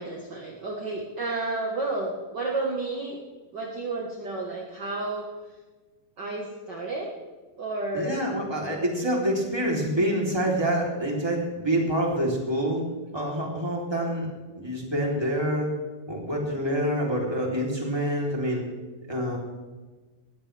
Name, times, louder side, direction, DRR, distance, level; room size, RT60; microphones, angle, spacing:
voice 1, 0.0-3.2 3.5-5.3 6.2-7.1 7.6-8.3, right 2 dB, 50° right, -2 dB, 1.3 m, -31 dB
voice 2, 7.9-12.8 13.1-14.3 14.5-15.7 16.1-18.6 19.1-19.4, equal, 5° right, -2 dB, 2.9 m, -26 dB
19.5 x 15.5 x 3.4 m, 1.3 s
omnidirectional pair, 4.2 m